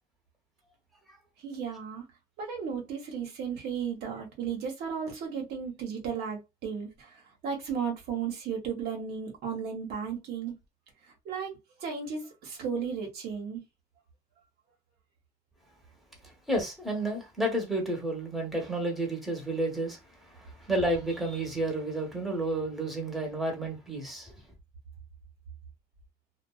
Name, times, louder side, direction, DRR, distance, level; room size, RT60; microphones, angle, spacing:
voice 1, 1.4-2.0 2.4-10.5 11.1-13.6, right 6 dB, 75° right, 0.9 m, -35 dB
voice 2, 16.5-20.0 20.3-24.3, right 1 dB, ahead, 1.0 m, -31 dB
2.4 x 2.2 x 2.3 m
cardioid pair, 110°, 17 cm